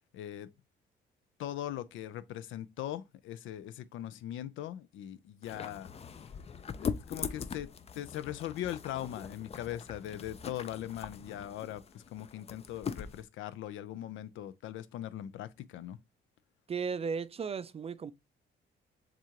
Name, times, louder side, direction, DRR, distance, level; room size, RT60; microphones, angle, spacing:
voice 1, 0.1-0.5 1.4-5.9 6.8-16.0, left 12 dB, 80° left, 0.5 m, -40 dB
sound 1, 5.4-13.2, left 6 dB, 30° left, 0.4 m, -41 dB
voice 2, 16.7-18.1, right 6 dB, 30° right, 0.4 m, -35 dB
7.3 x 2.5 x 2.9 m
cardioid pair, 90°, 20 cm